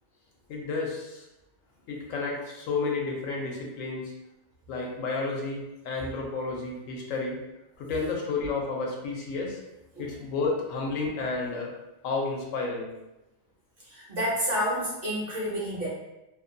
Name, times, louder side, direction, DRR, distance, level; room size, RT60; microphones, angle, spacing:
voice 1, 0.5-1.2 1.9-4.1 4.7-7.4 7.8-9.6 10.0-11.7 12.0-13.0, left 3 dB, 75° left, -1 dB, 1.0 m, -31 dB
voice 2, 13.8-15.9, equal, 50° right, -6 dB, 0.8 m, -29 dB
2.6 x 2.1 x 2.5 m, 0.96 s
omnidirectional pair, 1.4 m